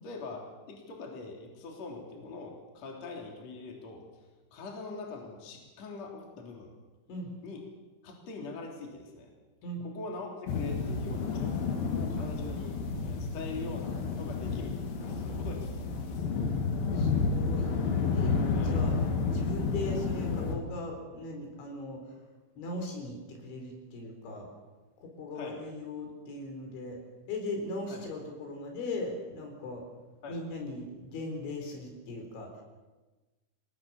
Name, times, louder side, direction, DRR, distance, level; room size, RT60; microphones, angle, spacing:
voice 1, 0.0-4.0 4.5-6.7 7.4-7.6 8.0-9.3 9.8-12.8 13.0-16.3 18.5-18.8 25.3-25.6 27.9-28.0 30.2-30.4, left 3 dB, 35° left, 0 dB, 4.1 m, -43 dB
sound 1, 10.5-20.6, left 4 dB, 55° left, 3.6 m, -30 dB
voice 2, 16.9-17.7 18.1-18.4 18.6-18.9 19.3-22.2 22.6-24.5 25.0-27.0 27.3-29.8 30.3-32.6, left 2 dB, 70° left, 3 dB, 6.8 m, -39 dB
27.0 x 19.5 x 7.2 m, 1.2 s
omnidirectional pair, 5.6 m